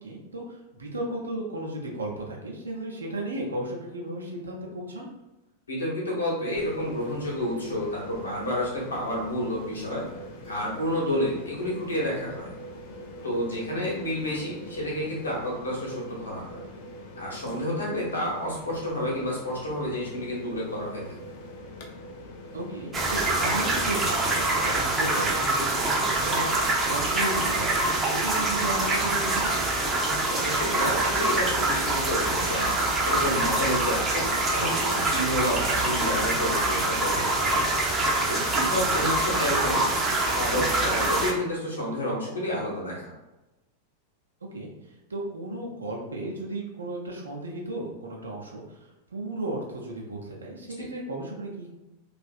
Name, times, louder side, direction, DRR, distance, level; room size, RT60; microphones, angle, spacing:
voice 1, 0.0-5.1 13.6-13.8 22.5-29.6 38.8-39.0 44.5-51.7, right 1 dB, 75° right, -1 dB, 0.6 m, -35 dB
voice 2, 5.7-10.1 10.5-12.5 13.2-16.6 17.2-21.2 30.3-32.7 33.0-37.6 38.3-39.8 40.3-43.1 50.6-50.7, equal, 75° left, -4 dB, 0.9 m, -30 dB
sound 1, 6.5-24.8, equal, 50° left, 0.4 m, -43 dB
sound 2, 22.9-41.3, right 2 dB, 20° right, 0.5 m, -25 dB
2.6 x 2.4 x 2.3 m, 1.0 s
figure-of-eight pair, 90°, 0 cm